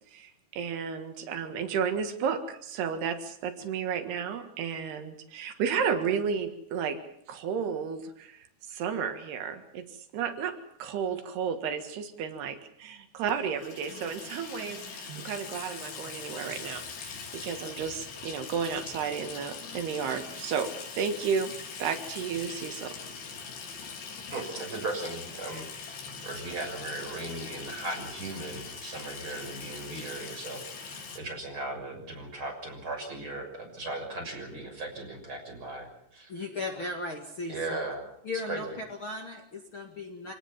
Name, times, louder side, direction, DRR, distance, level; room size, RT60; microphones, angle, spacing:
voice 1, 0.1-7.0 7.3-9.9 10.1-21.5 21.8-23.0, right 6 dB, 80° right, 7 dB, 3.8 m, -32 dB
Water tap faucet / Sink (filling or washing), 13.3-31.2, left 5 dB, 90° left, 5.4 m, -42 dB
voice 2, 24.3-26.0 26.2-36.3 37.5-38.1 38.5-38.6, right 2 dB, 30° right, 2 dB, 7.2 m, -37 dB
voice 3, 36.3-37.8 38.2-40.3, left 2 dB, 40° left, 2 dB, 2.4 m, -37 dB
26.5 x 18.0 x 7.3 m, 0.74 s
omnidirectional pair, 4.6 m